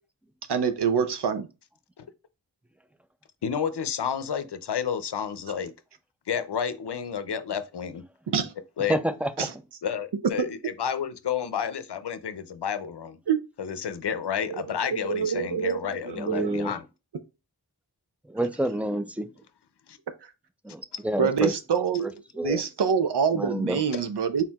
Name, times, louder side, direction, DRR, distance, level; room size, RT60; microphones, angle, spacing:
voice 1, 0.5-1.5 8.3-8.5 9.4-9.5 10.4-10.5 13.3-13.5 14.5-14.6 14.9-16.7 21.2-22.1 22.4-24.4, right 6 dB, 85° right, 0.6 m, -26 dB
voice 2, 3.4-5.7 6.3-8.0 8.8-9.0 9.8-13.2 13.6-16.8 19.9-20.0 23.9-24.0, left 7 dB, 85° left, 0.6 m, -31 dB
voice 3, 8.9-9.5 16.1-16.7 18.3-19.3 20.6-21.5 22.3-22.6 23.4-23.8, right 1 dB, 5° right, 0.4 m, -28 dB
4.4 x 3.7 x 2.3 m
wide cardioid pair, 55°, 40 cm